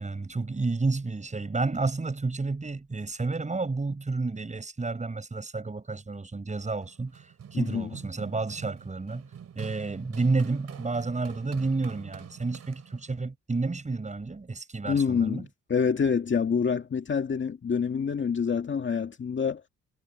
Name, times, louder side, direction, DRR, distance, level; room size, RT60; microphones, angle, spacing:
voice 1, 0.0-9.2 9.6-15.5, right 3 dB, 25° right, 7.6 m, -30 dB
Run, 6.8-13.2, right 8 dB, 55° right, 4.7 m, -45 dB
voice 2, 7.5-7.9 14.9-15.4 15.7-19.6, left 6 dB, 40° left, 2.2 m, -26 dB
cardioid pair, 90°, 30 cm